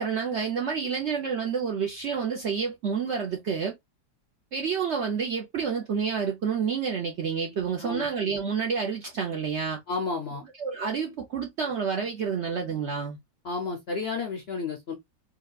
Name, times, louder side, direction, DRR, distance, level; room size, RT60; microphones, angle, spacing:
voice 1, 0.0-3.7 4.5-9.8 10.6-13.2, right 6 dB, 60° right, 0.7 m, -29 dB
voice 2, 9.9-10.4 13.4-14.9, left 4 dB, 55° left, 0.7 m, -31 dB
4.8 x 2.2 x 2.2 m
omnidirectional pair, 1.8 m